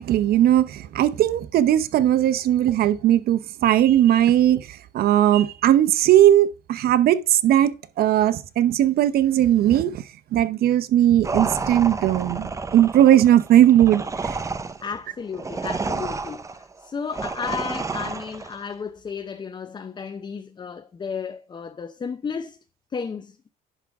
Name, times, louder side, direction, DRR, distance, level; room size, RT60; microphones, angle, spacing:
voice 1, 0.0-10.0 10.3-14.0, right 12 dB, 65° right, 0.8 m, -18 dB
sound 1, 11.2-18.6, right 4 dB, 20° right, 0.7 m, -30 dB
voice 2, 14.8-16.4 16.8-22.6 22.9-23.5, left 6 dB, 25° left, 0.7 m, -33 dB
10.5 x 3.6 x 6.2 m
cardioid pair, 110°, 17 cm